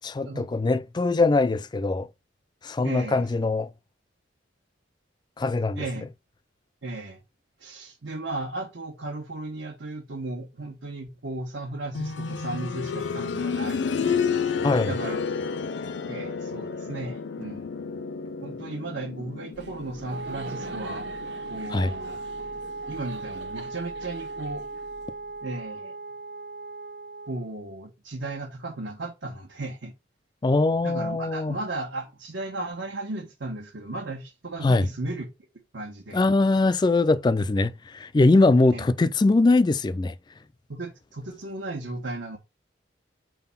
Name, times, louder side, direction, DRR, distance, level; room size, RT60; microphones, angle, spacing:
voice 1, 0.0-2.1 2.6-3.7 5.4-5.8 14.6-14.9 21.7-21.9 30.4-31.6 34.6-34.9 36.1-40.1, left 3 dB, 25° left, 0.3 m, -22 dB
voice 2, 2.8-3.3 5.7-6.1 6.8-7.2 7.6-14.2 14.8-15.2 16.1-17.7 18.4-21.1 21.5-22.2 22.9-24.6 25.4-25.9 27.3-29.9 30.8-35.3 35.7-36.3 38.6-38.9 40.7-42.4, right 2 dB, 85° right, 1.4 m, -35 dB
sound 1, 11.9-22.7 24.1-24.2, left 5 dB, 70° left, 0.5 m, -31 dB
Laughter, 19.5-25.4, right 2 dB, 65° right, 1.1 m, -44 dB
Wind instrument woodwind instrument, 20.1-27.5, right 3 dB, 50° right, 0.6 m, -37 dB
4.8 x 3.8 x 5.5 m
head